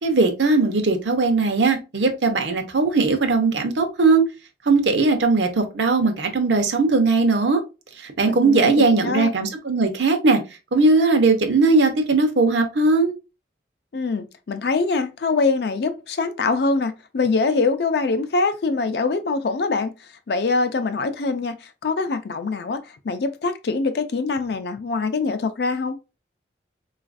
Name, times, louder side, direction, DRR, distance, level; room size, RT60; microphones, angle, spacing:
voice 1, 0.0-4.3 4.6-7.6 8.0-10.4 10.7-13.1, right 3 dB, 85° right, 0.7 m, -19 dB
voice 2, 8.2-9.3 13.9-19.9 20.3-26.0, left 3 dB, 65° left, 0.4 m, -24 dB
4.0 x 2.4 x 2.4 m
head